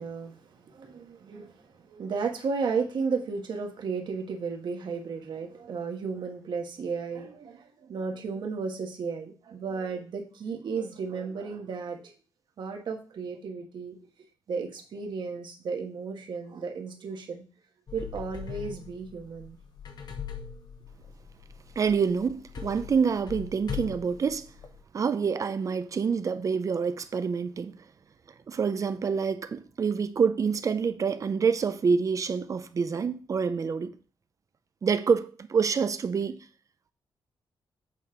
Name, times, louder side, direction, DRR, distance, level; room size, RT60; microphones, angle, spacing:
voice 1, 0.0-12.1 12.6-14.0 14.5-17.4 17.9-19.6, right 5 dB, 60° right, 1.4 m, -34 dB
sound 1, 17.9-24.8, left 7 dB, 55° left, 1.1 m, -41 dB
voice 2, 21.8-24.5 24.9-27.8 28.5-33.9 34.8-36.5, right 6 dB, 40° right, 0.6 m, -27 dB
8.2 x 4.2 x 4.8 m
cardioid pair, 125°, 9 cm